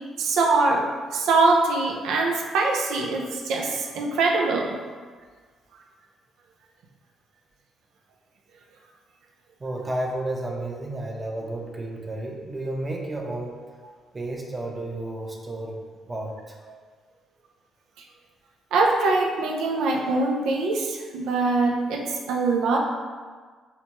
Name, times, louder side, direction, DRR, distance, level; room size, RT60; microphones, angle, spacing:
voice 1, 0.2-4.8 18.7-22.8, right 3 dB, 85° right, 0 dB, 0.4 m, -23 dB
voice 2, 9.6-13.5 14.1-15.8 16.1-16.6, right 1 dB, 25° right, -1 dB, 0.7 m, -32 dB
5.6 x 2.2 x 2.9 m, 1.5 s
cardioid pair, 90°, 0 cm